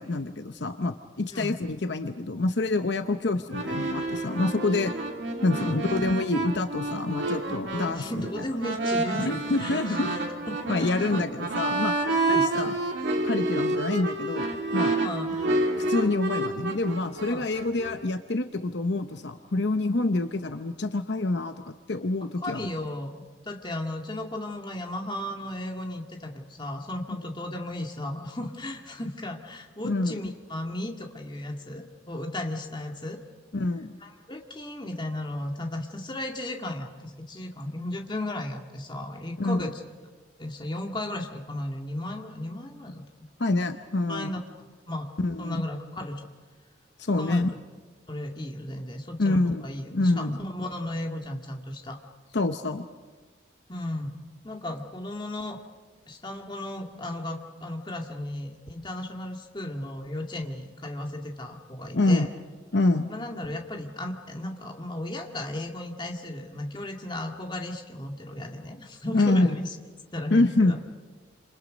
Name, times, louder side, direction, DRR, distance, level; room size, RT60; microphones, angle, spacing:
voice 1, 0.0-4.9 5.4-8.1 9.2-10.1 10.7-11.9 12.3-12.7 13.2-15.0 15.8-22.7 29.8-30.1 33.5-34.0 39.4-39.7 43.4-44.3 45.2-45.6 47.0-47.5 49.2-49.6 49.9-50.3 52.3-52.9 61.9-62.3 62.7-63.1 69.1-69.6 70.3-70.8, left 2 dB, 60° left, 8 dB, 0.8 m, -26 dB
sound 1, 3.5-18.0, right 2 dB, 65° right, 3.0 m, -29 dB
voice 2, 5.5-5.9 7.9-11.2 12.2-12.5 15.0-15.3 17.3-17.5 22.4-23.2 23.4-33.2 34.0-39.7 40.4-43.0 44.1-44.4 44.9-45.1 45.4-46.3 47.2-47.6 48.1-52.0 53.7-54.2 54.4-55.6 56.1-62.3 63.1-69.7 70.1-70.8, left 1 dB, 25° left, 2 dB, 2.0 m, -35 dB
27.5 x 27.0 x 5.2 m, 1.4 s
head